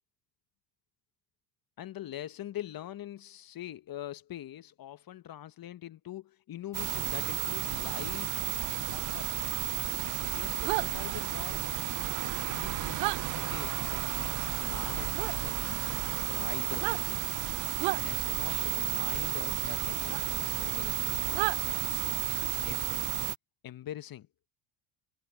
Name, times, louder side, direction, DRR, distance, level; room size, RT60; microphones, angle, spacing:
voice 1, 1.8-8.3 8.9-9.3 10.2-11.6 12.5-13.1 13.3-17.0 17.9-21.8 22.5-22.8 23.6-24.5, left 12 dB, 45° left, 1.3 m, -44 dB
sound 1, 6.7-23.4, right 14 dB, 40° right, 0.6 m, -32 dB
sound 2, 10.6-10.9 13.0-13.2 15.1-15.3 16.7-17.0 17.8-18.0 20.1-20.2 21.3-21.6, right 24 dB, 85° right, 1.1 m, -31 dB
supercardioid pair, 75°, 49 cm